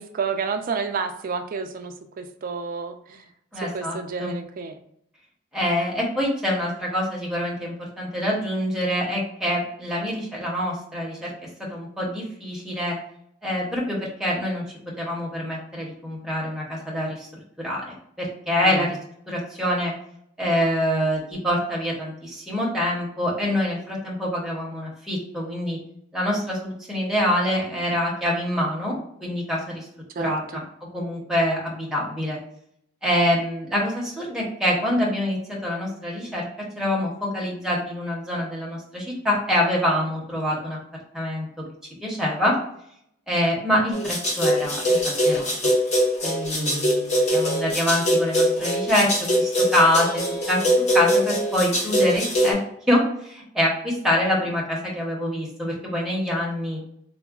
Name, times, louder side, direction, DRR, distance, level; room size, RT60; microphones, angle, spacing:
voice 1, 0.0-3.2 3.6-4.8 18.6-18.9 30.2-30.6 46.5-46.9, right 5 dB, 45° right, 7 dB, 0.3 m, -30 dB
voice 2, 3.5-4.3 5.5-11.3 11.7-13.0 13.4-14.6 15.0-17.3 17.6-17.8 18.2-19.0 19.3-19.9 20.4-25.8 26.1-29.0 29.2-29.8 30.2-30.6 30.9-32.4 33.0-36.5 36.8-40.8 41.1-41.6 42.0-42.5 43.3-45.7 46.2-52.6 52.9-56.8, left 1 dB, ahead, -4 dB, 0.6 m, -25 dB
sound 1, 43.9-52.5, equal, 35° left, 0.6 m, -22 dB
3.6 x 2.0 x 2.3 m, 0.71 s
head